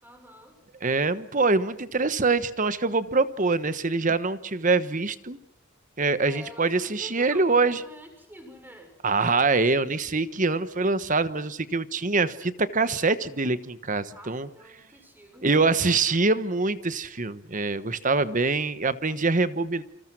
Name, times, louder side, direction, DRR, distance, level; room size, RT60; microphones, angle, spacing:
voice 1, 0.0-0.6 6.2-8.9 14.1-15.7, equal, 10° right, 5 dB, 6.4 m, -47 dB
voice 2, 0.8-5.4 6.0-7.8 9.0-14.5 15.4-19.8, right 3 dB, 40° right, 13 dB, 1.2 m, -24 dB
28.5 x 27.0 x 6.2 m, 0.70 s
head